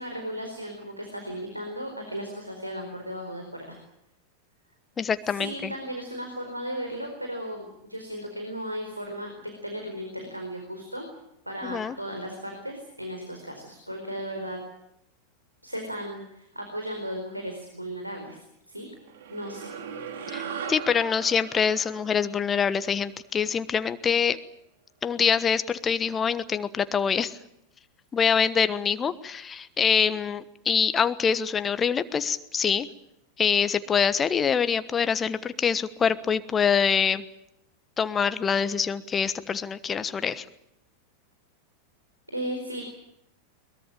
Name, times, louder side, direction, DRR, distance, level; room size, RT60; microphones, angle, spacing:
voice 1, 0.0-3.8 5.2-11.1 11.5-14.6 15.6-18.9 19.3-19.7 42.3-42.8, equal, 85° right, 3 dB, 4.5 m, -36 dB
voice 2, 5.0-5.7 11.6-11.9 20.3-20.4 20.7-24.4 25.0-27.4 28.1-32.9 33.4-37.2 38.0-40.4, left 6 dB, 20° left, 14 dB, 1.2 m, -25 dB
sound 1, 19.1-23.7, right 7 dB, 60° right, 3.2 m, -39 dB
22.5 x 21.5 x 8.7 m, 0.81 s
figure-of-eight pair, 90°, 0 cm